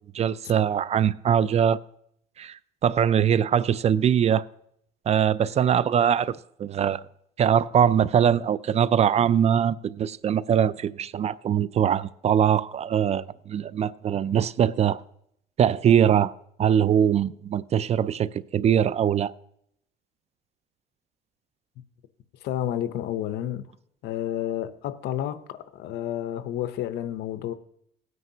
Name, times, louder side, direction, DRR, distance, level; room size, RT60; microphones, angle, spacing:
voice 1, 0.1-1.8 2.4-4.4 5.1-7.0 7.4-15.0 15.6-16.3 16.6-19.3, right 8 dB, 40° right, 0.4 m, -22 dB
voice 2, 22.4-23.7 24.0-27.5, left 11 dB, 80° left, 0.7 m, -30 dB
17.5 x 9.3 x 2.8 m
cardioid pair, 110°, 17 cm